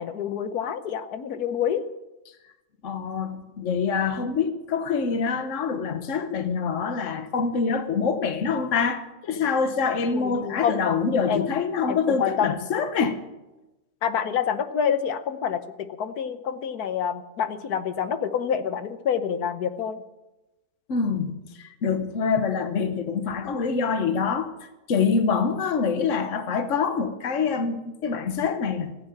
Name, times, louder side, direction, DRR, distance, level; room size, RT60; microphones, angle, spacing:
voice 1, 0.0-1.8 10.1-10.8 11.3-11.5 11.9-12.6 14.0-20.0, left 8 dB, 90° left, 1.5 m, -27 dB
voice 2, 2.8-13.2 20.9-24.5 24.9-29.0, left 5 dB, 55° left, 1.5 m, -25 dB
15.5 x 9.0 x 8.6 m
omnidirectional pair, 1.6 m